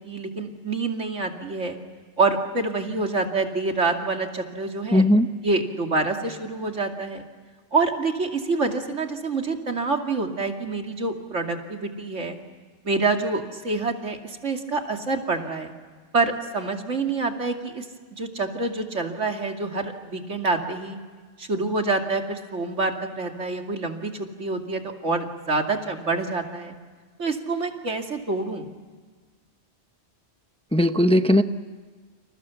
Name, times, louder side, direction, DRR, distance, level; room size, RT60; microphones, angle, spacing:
voice 1, 0.0-1.8 2.2-5.1 5.4-7.2 7.7-12.4 12.8-15.7 16.1-17.9 18.1-21.0 21.4-26.8 27.2-28.7, right 3 dB, 85° right, 3 dB, 2.9 m, -27 dB
voice 2, 4.9-5.3 30.7-31.4, left 1 dB, 5° left, 9 dB, 0.7 m, -18 dB
30.0 x 27.5 x 7.1 m, 1.5 s
omnidirectional pair, 1.2 m